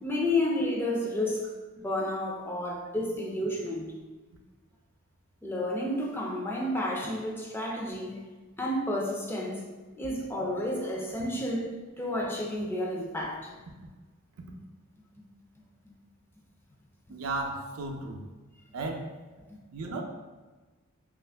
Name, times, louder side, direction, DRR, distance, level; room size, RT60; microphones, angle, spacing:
voice 1, 0.0-3.9 5.4-8.2 8.6-9.7 10.0-13.5 15.8-15.9 19.5-19.6, left 1 dB, 10° left, 0.3 m, -31 dB
voice 2, 17.1-18.2 18.7-19.1 19.7-20.0, right 2 dB, 85° right, 0.5 m, -34 dB
2.8 x 2.4 x 3.3 m
head